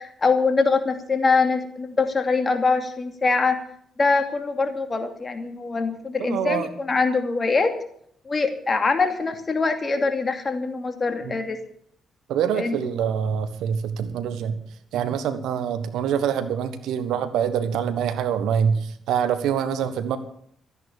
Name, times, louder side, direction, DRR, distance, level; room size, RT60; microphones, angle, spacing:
voice 1, 0.0-3.6 4.0-7.7 8.3-11.6 12.5-12.8, left 4 dB, 35° left, 6 dB, 2.5 m, -23 dB
voice 2, 6.2-6.7 11.2-11.4 12.3-14.6 14.9-20.2, right 8 dB, 75° right, 11 dB, 1.3 m, -25 dB
14.0 x 9.7 x 6.8 m, 0.66 s
hypercardioid pair, 45°, 0 cm